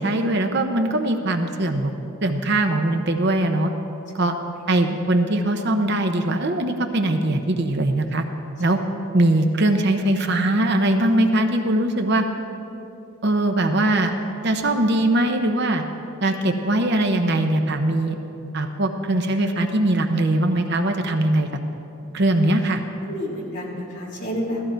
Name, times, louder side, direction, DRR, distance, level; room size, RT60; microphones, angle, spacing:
voice 1, 0.0-1.9 2.2-3.7 4.1-4.4 4.7-8.2 8.6-8.8 9.1-12.2 13.2-14.1 14.4-15.8 16.2-18.2 18.5-21.5 22.1-22.8, right 1 dB, 50° right, 5 dB, 0.8 m, -21 dB
voice 2, 4.2-4.7 8.7-8.8 23.0-24.6, equal, 35° left, -6 dB, 3.6 m, -31 dB
16.5 x 14.0 x 4.5 m, 2.8 s
head